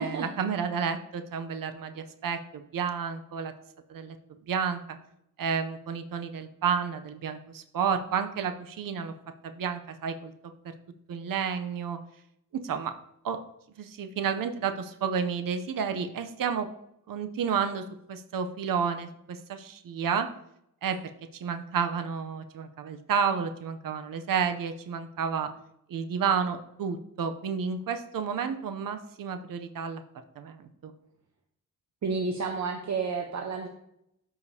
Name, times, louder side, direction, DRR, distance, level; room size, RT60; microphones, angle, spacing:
voice 1, 0.0-3.5 3.9-4.2 4.5-5.0 5.4-9.1 9.4-10.3 11.1-12.0 12.6-12.9 13.2-13.4 13.8-16.7 17.1-20.3 20.8-21.0 21.4-25.5 25.9-30.0 30.4-30.9, right 6 dB, 80° right, 8 dB, 0.7 m, -31 dB
voice 2, 32.0-33.7, right 4 dB, 55° right, 2 dB, 0.8 m, -30 dB
13.0 x 5.0 x 2.8 m, 0.77 s
wide cardioid pair, 175°, 33 cm